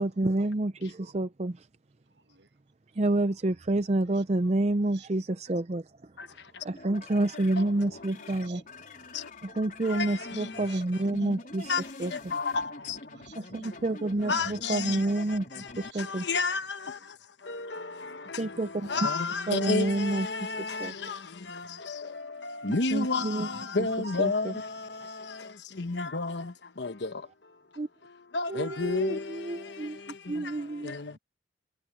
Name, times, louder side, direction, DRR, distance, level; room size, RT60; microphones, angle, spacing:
voice 1, 0.0-1.7 3.0-6.1 6.6-8.6 9.4-11.7 12.0-12.1 13.4-16.2 18.4-19.1 19.5-20.9 22.9-23.5 23.8-23.9 24.2-24.5 27.8-27.9 28.5-30.0 30.3-30.9, right 2 dB, 35° right, 0.5 m, -29 dB
voice 2, 2.1-2.5 4.3-4.6 4.9-5.1 6.5-6.6 8.0-8.6 10.5-10.8 13.1-13.9 15.8-16.0 16.9-17.1 18.4-18.9 21.6-21.8 23.5-23.6 31.1-31.2, right 6 dB, 80° right, 5.8 m, -55 dB
sound 1, 6.7-15.9, left 2 dB, 50° left, 4.4 m, -45 dB
voice 3, 7.3-7.9 9.1-9.3 9.8-11.0 11.7-11.8 12.1-13.0 14.2-17.0 17.4-27.2 28.3-30.5 30.8-31.1, left 4 dB, 75° left, 1.1 m, -32 dB
head